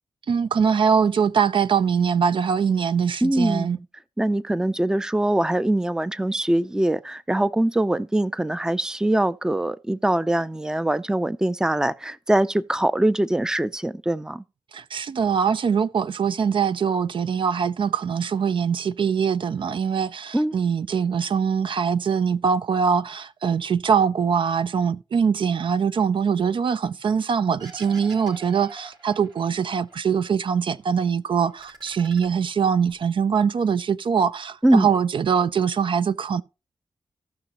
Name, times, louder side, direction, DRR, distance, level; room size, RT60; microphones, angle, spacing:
voice 1, 0.3-3.8 14.7-36.4, right 6 dB, 60° right, 0.4 m, -23 dB
voice 2, 3.2-3.9 4.2-14.4 20.3-20.5 34.6-34.9, right 1 dB, 5° right, 0.4 m, -23 dB
sound 1, 27.6-29.9 30.3-31.1 31.4-32.9, right 4 dB, 45° right, 2.1 m, -45 dB
16.0 x 6.0 x 3.0 m
cardioid pair, 70°, 9 cm